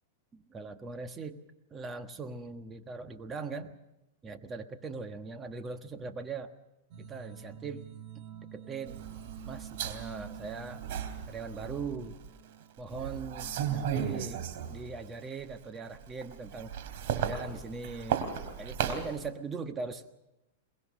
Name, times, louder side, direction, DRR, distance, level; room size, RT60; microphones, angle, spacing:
voice 1, 0.3-1.4 1.7-3.8 4.2-6.5 7.0-8.2 8.5-9.0 9.4-10.8 11.3-12.1 12.8-14.4 14.7-16.7 17.1-20.0, right 4 dB, 20° right, 8 dB, 1.4 m, -40 dB
sound 1, 6.9-13.5, right 11 dB, 45° right, 1.5 m, -49 dB
sound 2, 8.9-12.3 12.8-15.1 15.4-19.2, right 8 dB, 65° right, 3.2 m, -36 dB
23.0 x 21.0 x 6.3 m, 0.92 s
supercardioid pair, 145°, 0 cm